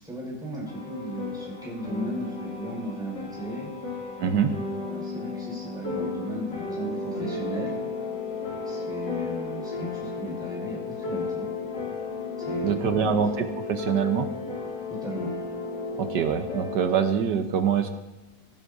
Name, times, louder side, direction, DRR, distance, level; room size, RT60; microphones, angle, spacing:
voice 1, 0.0-3.7 4.2-4.5 4.8-7.8 8.6-11.5 12.4-13.2 14.9-15.3, right 1 dB, ahead, -5 dB, 4.7 m, -36 dB
sound 1, 0.7-17.1, left 3 dB, 70° left, 3.3 m, -34 dB
voice 2, 4.2-4.5 12.6-14.3 16.0-17.9, right 7 dB, 70° right, 7 dB, 1.4 m, -24 dB
16.0 x 15.5 x 2.7 m, 1.1 s
omnidirectional pair, 2.0 m